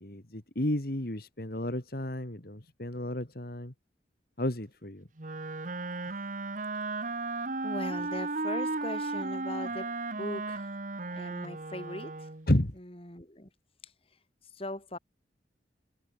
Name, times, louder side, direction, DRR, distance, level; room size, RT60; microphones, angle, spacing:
voice 1, 0.0-3.7 4.4-5.1 12.5-12.7, left 1 dB, 55° left, 2.2 m, -32 dB
Wind instrument woodwind instrument, 5.2-12.5, right 3 dB, 45° right, 1.4 m, -35 dB
voice 2, 7.6-10.8 11.1-12.3 12.8-13.5 13.8-15.0, left 1 dB, 30° left, 3.6 m, -40 dB
head